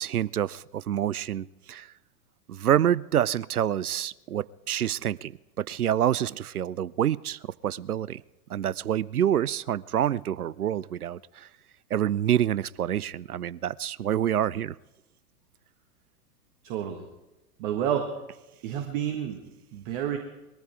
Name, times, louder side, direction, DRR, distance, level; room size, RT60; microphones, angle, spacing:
voice 1, 0.0-1.9 2.5-5.3 5.6-8.2 8.5-11.5 11.9-14.8, right 10 dB, 80° right, 23 dB, 0.5 m, -27 dB
voice 2, 16.6-17.0 17.6-18.1 18.6-19.4 19.7-20.2, right 9 dB, 35° right, 5 dB, 1.5 m, -29 dB
21.0 x 14.0 x 4.8 m, 1.0 s
figure-of-eight pair, 100°, 44 cm